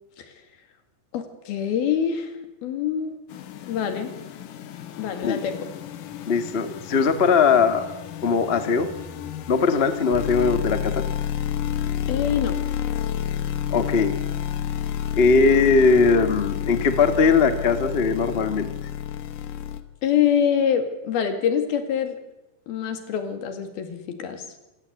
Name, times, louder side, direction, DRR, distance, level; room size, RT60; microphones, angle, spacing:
voice 1, 1.1-2.3 2.6-3.2 3.6-4.1 5.0-5.7 12.1-12.6 20.0-22.2 22.7-24.4, left 8 dB, 85° left, 8 dB, 4.1 m, -25 dB
sound 1, 3.3-19.8, left 10 dB, 65° left, 2.7 m, -30 dB
voice 2, 6.3-7.8 8.2-8.9 9.5-11.0 13.7-14.1 15.1-18.7, left 5 dB, 45° left, 9 dB, 0.7 m, -20 dB
27.0 x 16.5 x 8.2 m, 1.0 s
omnidirectional pair, 4.3 m